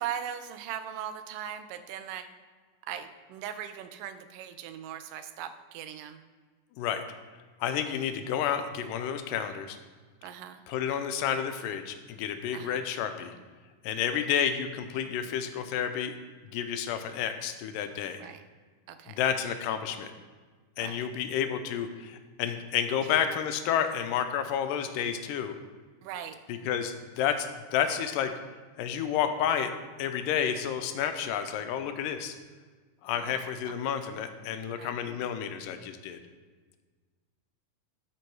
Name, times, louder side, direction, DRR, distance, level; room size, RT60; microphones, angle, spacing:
voice 1, 0.0-2.3 2.9-6.2 10.2-10.6 12.5-12.8 18.2-18.4 18.9-19.2 20.8-21.0 26.0-26.4 33.2-33.4 33.7-33.8 34.8-35.0, right 9 dB, 90° right, 10 dB, 2.3 m, -39 dB
voice 2, 7.6-9.8 10.7-13.3 13.8-16.1 16.5-18.2 19.1-20.1 20.8-25.6 26.5-28.3 28.8-29.7 30.0-32.4 33.0-36.2, left 8 dB, 90° left, 8 dB, 2.3 m, -30 dB
12.5 x 4.6 x 4.6 m, 1.5 s
omnidirectional pair, 3.7 m